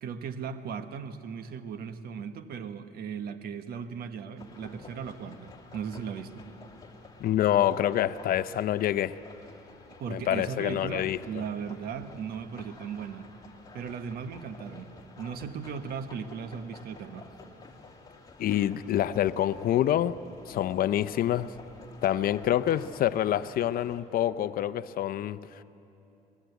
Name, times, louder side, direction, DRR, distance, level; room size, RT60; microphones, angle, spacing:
voice 1, 0.0-6.5 10.0-13.3 13.7-17.3, right 6 dB, 65° right, 1.3 m, -37 dB
sound 1, 4.4-24.0, left 3 dB, 20° left, 2.6 m, -51 dB
voice 2, 7.2-9.2 10.1-11.2 18.4-20.2 20.5-21.5 22.0-25.6, left 11 dB, 60° left, 0.6 m, -26 dB
23.0 x 20.5 x 8.3 m
cardioid pair, 110°, 17 cm